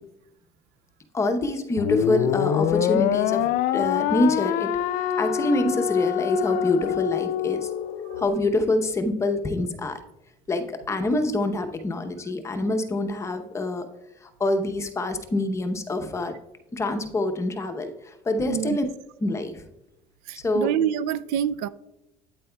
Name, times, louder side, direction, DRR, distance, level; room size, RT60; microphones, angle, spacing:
voice 1, 1.1-7.7 8.2-10.0 10.5-13.9 14.2-16.3 16.7-18.9 19.2-19.6 20.3-20.7, left 2 dB, 20° left, 0.8 m, -26 dB
sound 1, 1.8-8.3, left 10 dB, 60° left, 0.4 m, -25 dB
voice 2, 18.4-18.8 20.3-21.7, right 9 dB, 75° right, 0.4 m, -27 dB
8.8 x 8.3 x 2.3 m
cardioid pair, 140°, 15 cm